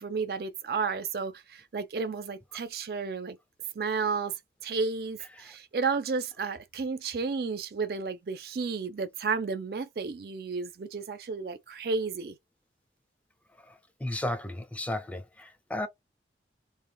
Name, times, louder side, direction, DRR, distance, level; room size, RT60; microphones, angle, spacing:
voice 1, 0.0-3.4 3.8-4.3 4.6-12.3, right 4 dB, 60° right, 0.4 m, -32 dB
voice 2, 14.0-15.9, left 1 dB, 10° left, 0.3 m, -33 dB
3.3 x 2.2 x 2.2 m
head